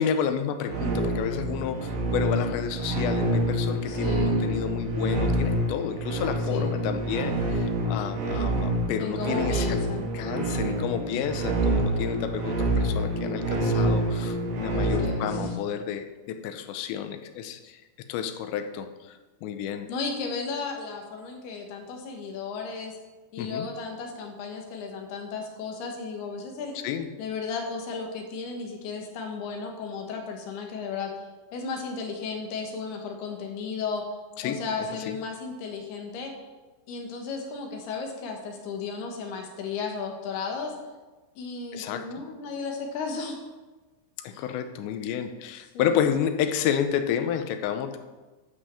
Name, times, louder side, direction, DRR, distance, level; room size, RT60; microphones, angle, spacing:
voice 1, 0.0-9.9 10.1-17.8 18.1-19.9 23.4-23.7 26.8-27.1 34.4-35.2 41.7-42.0 44.2-48.0, left 8 dB, 90° left, 8 dB, 3.1 m, -30 dB
sound 1, 0.7-15.5, right 1 dB, 65° right, 1.7 m, -27 dB
voice 2, 3.9-4.4 6.5-6.7 9.0-10.1 14.8-15.6 19.9-22.9 23.3-26.8 27.2-31.3 31.5-34.0 34.4-36.3 36.9-40.7 41.4-43.4 44.3-44.5 45.7-46.0, left 5 dB, 70° left, 2 dB, 3.3 m, -34 dB
11.5 x 5.6 x 6.9 m, 1.2 s
omnidirectional pair, 5.0 m